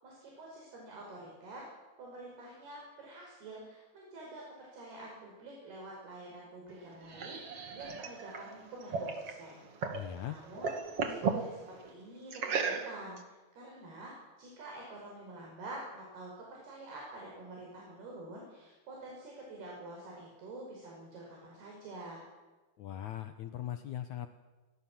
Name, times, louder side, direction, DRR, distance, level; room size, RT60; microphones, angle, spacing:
voice 1, 0.0-1.7 2.0-9.6 10.3-10.8 11.1-22.2, right 2 dB, 65° right, -1 dB, 7.5 m, -48 dB
sound 1, 6.7-10.1 10.4-11.4 12.3-13.2, right 5 dB, 40° right, 2.7 m, -35 dB
voice 2, 9.9-10.4 22.8-24.3, left 11 dB, 75° left, 8 dB, 1.7 m, -40 dB
29.0 x 23.0 x 7.6 m, 1.2 s
omnidirectional pair, 5.0 m